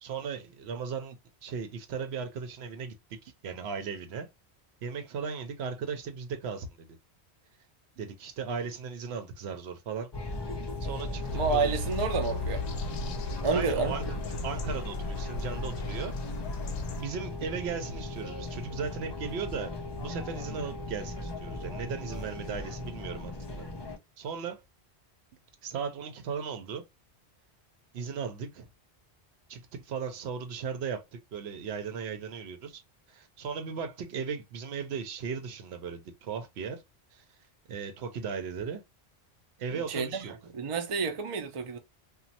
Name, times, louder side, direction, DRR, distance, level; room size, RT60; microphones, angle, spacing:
voice 1, 0.0-4.3 4.8-6.9 8.0-10.1 10.8-11.8 13.5-14.0 14.4-16.1 17.0-19.7 20.0-23.7 24.2-24.6 25.6-26.8 27.9-28.7 29.5-32.8 33.1-36.8 37.1-37.2 37.7-38.8 39.6-40.3, right 6 dB, 75° right, 0.9 m, -37 dB
sound 1, 10.1-24.0, left 2 dB, 40° left, 0.4 m, -38 dB
sound 2, 11.2-17.0, left 3 dB, 65° left, 0.7 m, -36 dB
voice 2, 11.3-12.6 13.4-14.0 39.7-40.3 40.5-41.8, right 4 dB, 40° right, 0.5 m, -29 dB
3.0 x 2.3 x 2.7 m
omnidirectional pair, 1.1 m